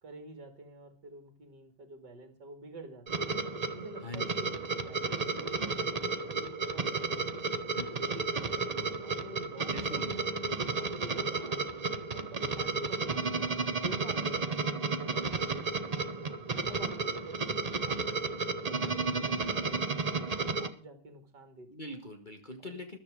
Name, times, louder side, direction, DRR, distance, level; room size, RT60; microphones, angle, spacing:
voice 1, 0.0-3.2 3.7-8.5 9.0-13.2 13.8-18.3 18.6-21.7 22.6-22.8, right 2 dB, 60° right, 8 dB, 2.9 m, -49 dB
sound 1, 3.1-20.7, right 4 dB, 35° right, 0.6 m, -33 dB
voice 2, 4.0-4.5 7.7-8.1 9.7-10.1 21.7-23.0, left 2 dB, 25° left, 3 dB, 1.7 m, -43 dB
14.0 x 12.5 x 4.9 m, 0.36 s
omnidirectional pair, 2.1 m